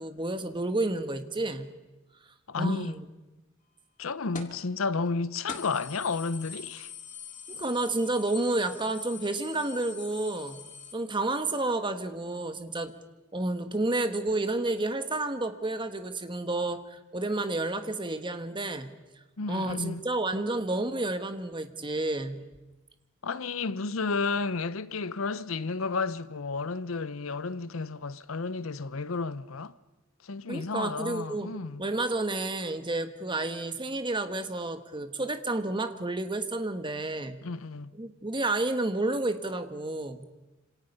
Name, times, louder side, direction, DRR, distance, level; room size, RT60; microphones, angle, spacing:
voice 1, 0.0-1.7 2.6-3.0 7.5-10.6 10.9-12.9 13.3-18.9 19.5-22.4 30.5-31.5 31.8-37.4 38.0-40.2, right 2 dB, 25° right, 1.4 m, -30 dB
voice 2, 2.5-2.9 4.0-6.9 19.4-20.1 23.2-29.7 30.2-31.8 37.4-38.0, left 4 dB, 85° left, 0.8 m, -32 dB
sound 1, 4.4-4.6 5.1-5.2 5.5-10.9, left 6 dB, 40° left, 2.3 m, -44 dB
27.0 x 26.5 x 5.5 m
head